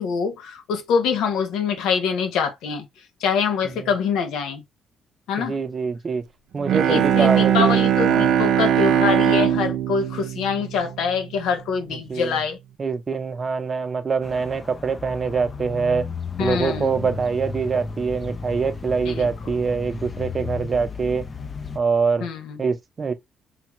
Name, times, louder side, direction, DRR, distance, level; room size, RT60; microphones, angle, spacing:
voice 1, 0.0-2.9 3.2-4.6 5.3-5.6 6.9-12.6 16.4-16.9 19.1-19.3 22.2-22.6, left 6 dB, 90° left, 0.7 m, -24 dB
voice 2, 5.4-6.2 6.5-7.8 8.1-8.4 12.1-12.4 12.8-16.1 16.4-21.3 21.7-22.3 22.6-23.1, right 5 dB, 40° right, 0.7 m, -24 dB
Bowed string instrument, 6.6-11.5, right 9 dB, 75° right, 0.4 m, -20 dB
sound 1, 14.2-21.8, left 5 dB, 35° left, 0.4 m, -34 dB
3.3 x 2.3 x 2.9 m
cardioid pair, 90°, 0 cm